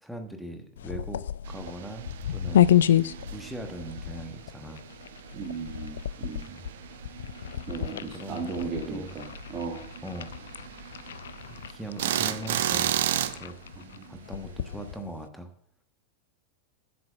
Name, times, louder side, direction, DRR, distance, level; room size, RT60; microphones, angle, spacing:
voice 1, 0.0-2.7 3.2-4.8 6.5-6.7 7.8-9.1 10.0-10.4 11.5-13.0 13.3-13.6 14.1-15.5, right 1 dB, ahead, 5 dB, 1.3 m, -40 dB
sound 1, 0.8-15.3, left 11 dB, 65° left, 0.3 m, -30 dB
sound 2, 1.4-14.9, right 11 dB, 55° right, 0.5 m, -35 dB
voice 2, 5.3-6.4 7.7-9.3 9.5-9.8 13.8-14.1, right 5 dB, 30° right, -2 dB, 1.6 m, -36 dB
8.2 x 6.7 x 7.3 m, 0.67 s
figure-of-eight pair, 90°, 0 cm